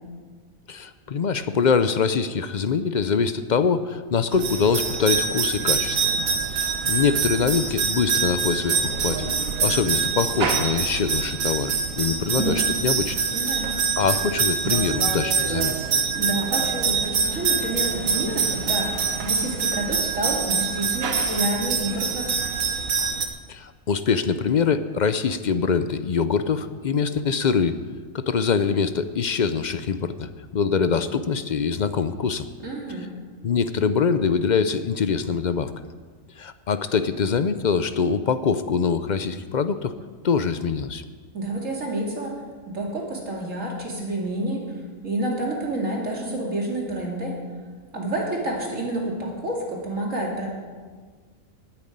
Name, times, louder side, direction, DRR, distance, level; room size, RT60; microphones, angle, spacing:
voice 1, 0.7-6.1 6.5-9.3 9.6-13.3 14.0-15.8 23.5-27.8 28.1-32.5 33.4-35.7 36.4-39.9 40.2-41.0, left 6 dB, 50° left, 11 dB, 0.5 m, -24 dB
sound 1, 4.3-23.3, right 5 dB, 90° right, 1.5 m, -25 dB
voice 2, 13.3-13.8 16.2-22.4 32.6-33.1 41.3-42.4 42.7-44.6 45.0-47.4 47.9-50.5, right 1 dB, 70° right, -1 dB, 3.0 m, -29 dB
10.5 x 9.1 x 9.3 m, 1.5 s
omnidirectional pair, 1.4 m